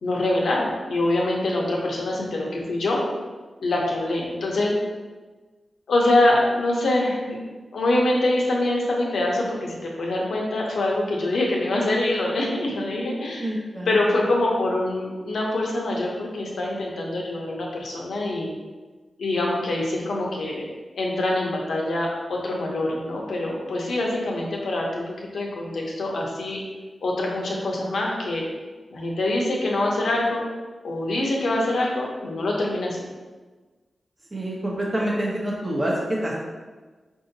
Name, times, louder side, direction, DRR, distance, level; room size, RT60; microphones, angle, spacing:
voice 1, 0.0-3.0 3.6-4.7 5.9-7.4 7.7-13.5 13.9-18.5 19.2-20.6 20.9-25.0 25.3-26.6 27.0-28.4 28.9-30.5 30.8-33.1, left 2 dB, 90° left, -2 dB, 0.7 m, -24 dB
voice 2, 13.4-14.2 34.3-36.3, right 1 dB, 30° right, -4 dB, 0.7 m, -27 dB
4.8 x 2.7 x 2.6 m, 1.3 s
cardioid pair, 65°, 0 cm